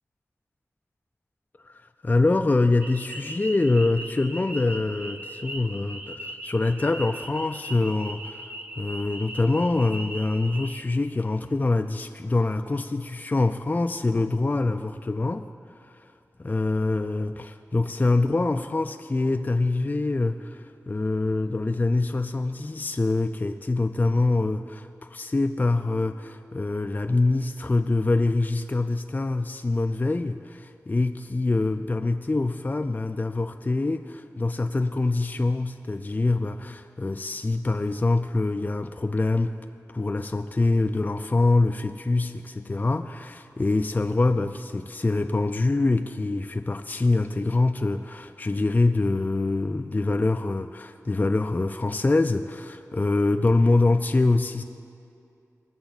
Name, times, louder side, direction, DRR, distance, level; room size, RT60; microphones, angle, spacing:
voice 1, 1.6-15.5 15.8-16.1 16.4-39.6 39.9-54.6, left 2 dB, 30° left, 6 dB, 0.4 m, -25 dB
sound 1, 2.8-10.8, right 1 dB, 30° right, 0.8 m, -39 dB
19.5 x 7.0 x 4.0 m, 2.5 s
cardioid pair, 50°, 6 cm